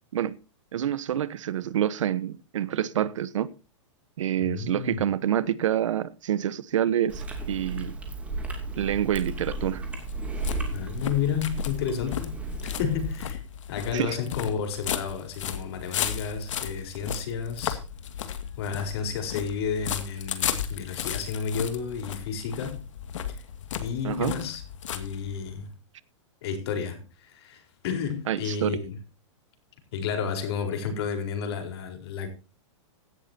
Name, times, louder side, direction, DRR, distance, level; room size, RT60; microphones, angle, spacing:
voice 1, 0.7-3.5 4.2-8.0 8.8-9.8 13.9-14.2 24.0-24.3 28.3-28.8, right 10 dB, 80° right, 1.2 m, -27 dB
voice 2, 4.4-5.0 10.7-13.4 13.7-17.8 18.6-22.8 23.3-23.4 23.7-24.6 24.9-25.7 26.4-29.0 29.9-32.3, left 7 dB, 55° left, 4.4 m, -31 dB
Chewing mastication, 7.1-13.2, right 2 dB, 10° right, 2.6 m, -34 dB
sound 1, 9.1-25.6, left 9 dB, 75° left, 2.3 m, -35 dB
16.5 x 12.0 x 2.8 m
hypercardioid pair, 160°, 16 cm